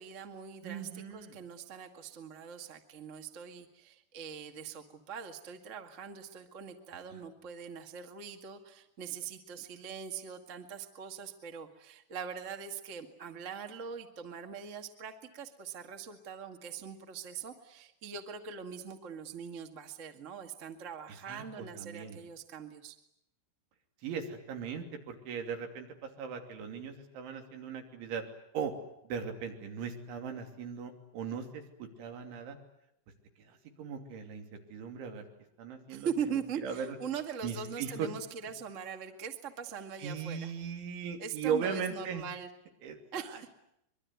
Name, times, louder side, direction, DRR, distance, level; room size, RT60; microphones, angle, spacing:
voice 1, 0.0-22.9 35.9-40.5 41.2-42.5 43.1-43.5, right 7 dB, 45° right, 6 dB, 0.9 m, -42 dB
voice 2, 0.6-1.4 7.1-7.2 21.3-22.2 24.0-28.2 28.5-28.7 29.1-32.6 33.4-34.4 34.7-35.3 35.6-36.1 36.6-37.0 37.4-38.1 40.0-42.3 42.8-43.0 43.3-43.5, right 6 dB, 90° right, 5 dB, 5.3 m, -38 dB
25.0 x 23.0 x 9.6 m, 0.79 s
omnidirectional pair, 5.2 m